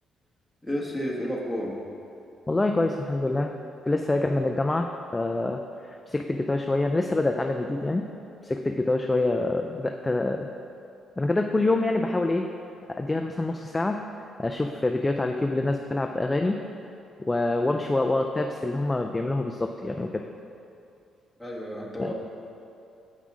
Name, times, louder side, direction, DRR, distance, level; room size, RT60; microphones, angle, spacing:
voice 1, 0.6-1.8 21.4-22.1, equal, ahead, -4 dB, 1.4 m, -31 dB
voice 2, 2.5-3.5 3.9-5.6 6.1-8.1 8.4-10.5 11.2-12.5 12.9-14.1 14.4-16.6 17.2-20.3 22.0-22.1, left 2 dB, 15° left, 4 dB, 0.3 m, -26 dB
7.3 x 5.5 x 4.9 m, 2.7 s
cardioid pair, 90°, 0 cm